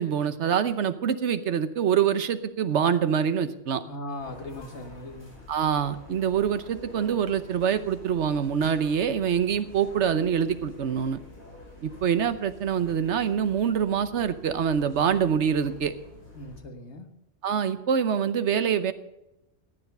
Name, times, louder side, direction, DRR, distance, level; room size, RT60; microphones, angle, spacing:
voice 1, 0.0-3.8 5.5-11.2 11.8-15.9 17.4-18.9, right 8 dB, 80° right, 12 dB, 1.2 m, -25 dB
voice 2, 3.8-5.3 16.3-17.1, left 1 dB, 75° left, 5 dB, 1.8 m, -39 dB
sound 1, 4.2-16.6, left 2 dB, 45° left, 6.0 m, -48 dB
14.5 x 9.6 x 5.5 m, 0.92 s
omnidirectional pair, 1.2 m